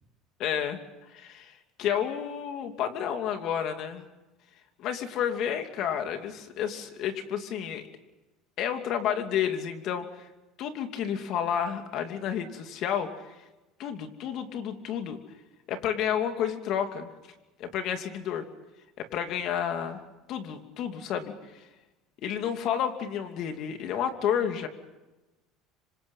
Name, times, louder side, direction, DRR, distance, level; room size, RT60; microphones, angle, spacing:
voice 1, 0.4-4.0 4.8-7.8 8.6-10.3 10.6-13.4 13.8-15.2 15.7-17.1 17.6-18.5 19.0-20.0 20.3-21.7 22.2-24.7, left 8 dB, 50° left, 6 dB, 2.8 m, -31 dB
26.5 x 25.5 x 5.7 m, 1.1 s
cardioid pair, 140°, 0 cm